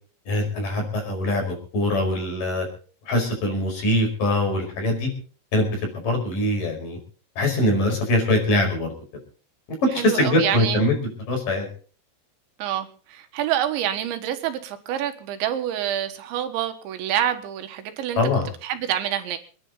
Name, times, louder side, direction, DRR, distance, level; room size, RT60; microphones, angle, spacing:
voice 1, 0.3-2.7 3.1-5.1 5.5-7.0 7.4-8.9 9.9-11.7 18.2-18.5, left 1 dB, 50° left, 2 dB, 6.5 m, -23 dB
voice 2, 10.0-10.8 12.6-18.2 18.6-19.4, right 11 dB, 85° right, 8 dB, 3.7 m, -27 dB
27.5 x 11.0 x 3.9 m, 0.40 s
omnidirectional pair, 5.2 m